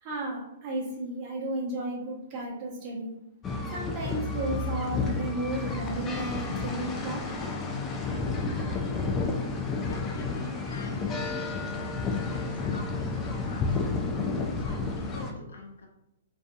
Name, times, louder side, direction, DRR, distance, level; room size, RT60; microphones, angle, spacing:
voice 1, 0.0-3.1 3.7-7.2, right 2 dB, 35° right, -3 dB, 0.8 m, -33 dB
sound 1, 3.4-15.3, left 4 dB, 20° left, 0.3 m, -31 dB
voice 2, 9.8-13.9 14.5-15.9, left 2 dB, 80° left, 1 dB, 0.6 m, -46 dB
2.6 x 2.3 x 2.5 m, 0.83 s
hypercardioid pair, 145°, 0 cm